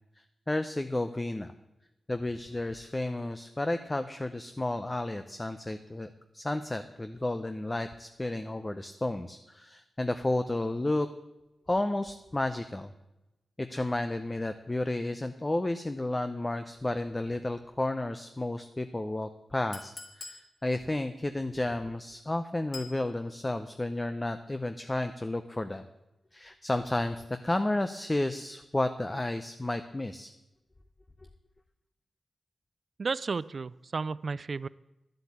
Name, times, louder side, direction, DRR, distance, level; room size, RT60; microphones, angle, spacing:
voice 1, 0.5-1.5 2.1-11.1 11.7-12.9 13.6-25.8 26.3-30.3, left 2 dB, 20° left, 9 dB, 0.6 m, -32 dB
Chink clink, 19.7-20.5 22.7-23.0, left 3 dB, 55° left, 2.1 m, -43 dB
voice 2, 33.0-34.7, right 4 dB, 45° right, 19 dB, 0.4 m, -33 dB
11.0 x 7.9 x 8.6 m, 0.96 s
wide cardioid pair, 95°, 0 cm